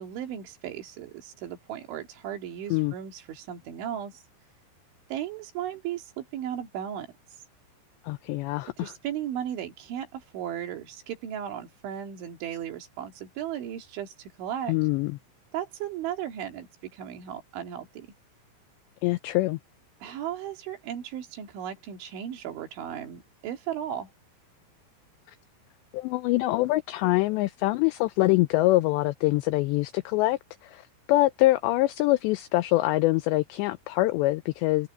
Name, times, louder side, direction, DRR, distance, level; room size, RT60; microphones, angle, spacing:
voice 1, 0.0-4.2 5.1-7.1 8.8-14.7 15.5-18.1 20.0-24.1, right 10 dB, 70° right, 4.7 m, -36 dB
voice 2, 8.0-8.9 14.7-15.2 19.0-19.6 25.9-34.9, left 18 dB, 85° left, 2.5 m, -24 dB
omnidirectional pair, 5.7 m